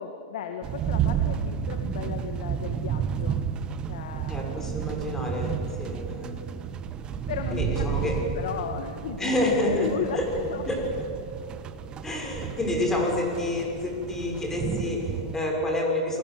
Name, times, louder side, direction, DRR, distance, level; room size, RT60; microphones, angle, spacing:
voice 1, 0.0-3.4 3.7-4.5 7.3-10.6, left 7 dB, 70° left, 6 dB, 2.0 m, -35 dB
sound 1, 0.6-15.4, right 8 dB, 25° right, 1.4 m, -32 dB
voice 2, 4.3-6.4 7.5-8.1 9.2-9.9 10.1-10.3 10.7-10.8 12.0-16.2, left 1 dB, 10° left, 0 dB, 6.5 m, -28 dB
28.5 x 20.0 x 8.0 m, 2.8 s
hypercardioid pair, 135°, 4 cm